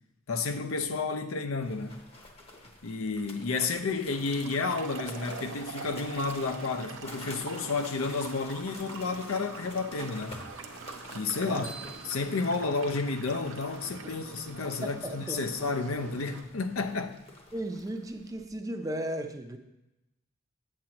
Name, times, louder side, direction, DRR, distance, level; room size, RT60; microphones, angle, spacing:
voice 1, 0.3-2.0 2.8-10.4 11.1-11.7 12.0-17.2, left 4 dB, 90° left, 0.6 m, -31 dB
sound 1, 1.6-18.4, left 2 dB, 30° left, 0.8 m, -50 dB
sound 2, 4.1-16.4, right 4 dB, 60° right, 0.6 m, -44 dB
voice 2, 11.4-11.7 14.0-14.1 14.8-15.5 17.5-19.6, right 1 dB, 15° right, 0.5 m, -36 dB
sound 3, 11.6-13.6, right 3 dB, 70° left, 1.5 m, -49 dB
8.6 x 7.6 x 2.9 m
head